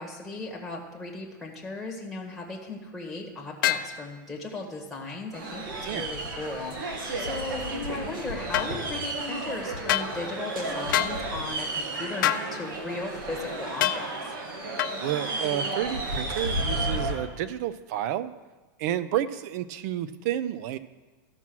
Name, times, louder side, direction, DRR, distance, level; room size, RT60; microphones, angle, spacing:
voice 1, 0.0-14.3, left 3 dB, ahead, 0 dB, 1.5 m, -37 dB
sound 1, 3.6-3.9 8.5-8.7 9.9-10.1 10.9-11.2 12.2-12.5 13.8-14.0 14.8-15.0, left 13 dB, 70° left, 0.5 m, -24 dB
sound 2, 5.3-17.2, right 2 dB, 80° right, 2.2 m, -32 dB
voice 2, 15.0-18.3 18.8-20.8, right 12 dB, 50° right, 15 dB, 0.5 m, -30 dB
13.5 x 5.9 x 6.1 m, 1.3 s
supercardioid pair, 150°, 11 cm